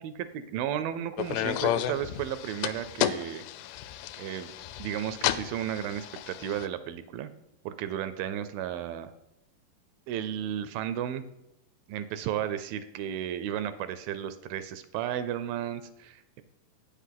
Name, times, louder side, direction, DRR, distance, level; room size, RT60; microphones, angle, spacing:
voice 1, 0.0-3.4 4.2-4.5 4.8-7.3 7.6-9.1 10.1-11.3 11.9-16.4, right 10 dB, 80° right, 12 dB, 2.2 m, -34 dB
sound 1, 1.2-6.7, left 12 dB, 85° left, 2.5 m, -32 dB
8.4 x 8.4 x 5.8 m, 0.87 s
omnidirectional pair, 4.3 m